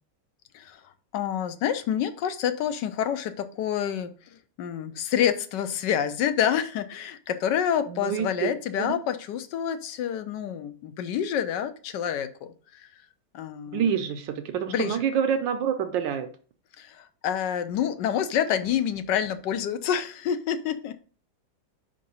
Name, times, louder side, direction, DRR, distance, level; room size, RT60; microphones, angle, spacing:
voice 1, 1.1-4.1 4.6-12.9 13.3-13.9 14.7-15.0 16.8-21.0, left 9 dB, 75° left, 10 dB, 1.2 m, -28 dB
voice 2, 7.9-9.0 13.7-16.3, right 8 dB, 85° right, 7 dB, 1.4 m, -27 dB
5.1 x 3.9 x 5.4 m, 0.39 s
omnidirectional pair, 2.0 m